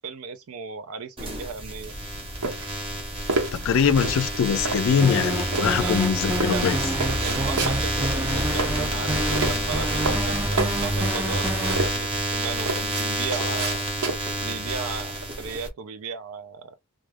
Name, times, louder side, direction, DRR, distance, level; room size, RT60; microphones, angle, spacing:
voice 1, 0.0-1.9 5.8-6.0 6.5-6.7 7.2-13.8 14.4-16.7, right 5 dB, 70° right, 0.4 m, -35 dB
sound 1, 1.2-15.7, right 1 dB, 25° right, 0.8 m, -29 dB
sound 2, 1.8-14.5, right 3 dB, 90° right, 1.0 m, -31 dB
voice 2, 3.5-6.8, left 7 dB, 60° left, 0.3 m, -22 dB
sound 3, 5.0-11.9, right 1 dB, 10° right, 0.4 m, -28 dB
2.3 x 2.3 x 3.2 m
head